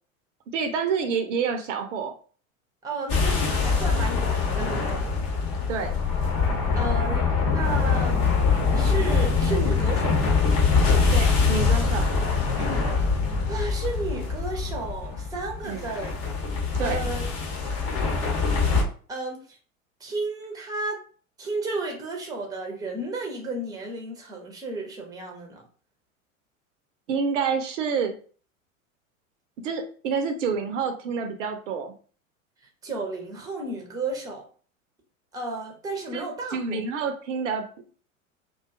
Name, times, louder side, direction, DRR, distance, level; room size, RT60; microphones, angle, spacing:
voice 1, 0.5-2.1 5.7-6.0 11.1-12.1 12.6-12.8 15.6-15.9 16.8-17.1 27.1-28.1 29.6-31.9 36.1-36.3 36.5-37.6, right 5 dB, 65° right, 7 dB, 0.5 m, -28 dB
voice 2, 2.8-5.0 6.7-8.2 8.7-10.5 13.5-16.2 16.8-17.2 19.1-19.6 20.0-21.0 21.4-25.6 32.8-34.4 35.3-36.8, right 3 dB, 10° right, 1 dB, 0.6 m, -33 dB
sound 1, 3.1-18.8, left 4 dB, 45° left, 0.8 m, -23 dB
2.4 x 2.3 x 2.4 m, 0.41 s
figure-of-eight pair, 85°, 41 cm